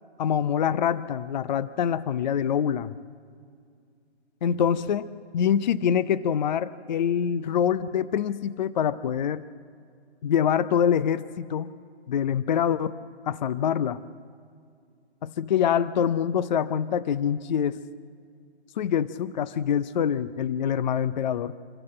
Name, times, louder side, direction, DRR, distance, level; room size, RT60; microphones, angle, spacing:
voice 1, 0.2-2.9 4.4-9.4 10.2-11.7 12.1-13.0 13.2-14.0 15.2-17.8 18.8-21.5, left 8 dB, 40° left, 15 dB, 0.6 m, -25 dB
25.5 x 15.0 x 7.7 m, 2.3 s
hypercardioid pair, 150°, 34 cm